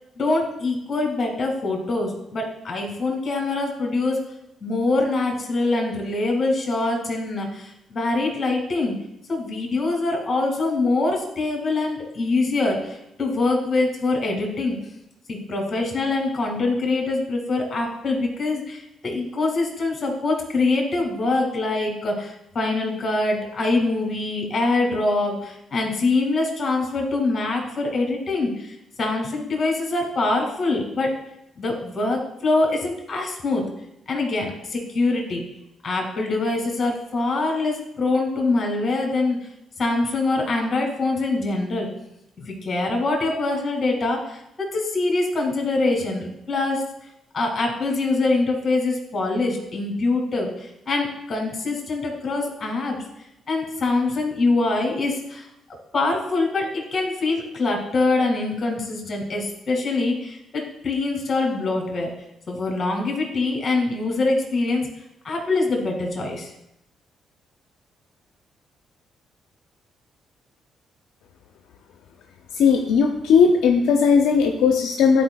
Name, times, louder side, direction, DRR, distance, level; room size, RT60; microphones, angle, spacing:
voice 1, 0.2-4.2 4.6-9.0 9.3-14.8 15.3-31.1 31.6-33.7 34.1-35.4 35.8-39.4 39.8-41.9 42.4-46.8 47.3-53.0 53.5-55.5 55.9-62.1 62.5-64.9 65.2-66.5, left 3 dB, 40° left, 2 dB, 2.1 m, -24 dB
voice 2, 72.5-75.2, left 6 dB, 85° left, 4 dB, 0.5 m, -17 dB
10.5 x 4.7 x 2.3 m, 0.82 s
cardioid pair, 70°, 0 cm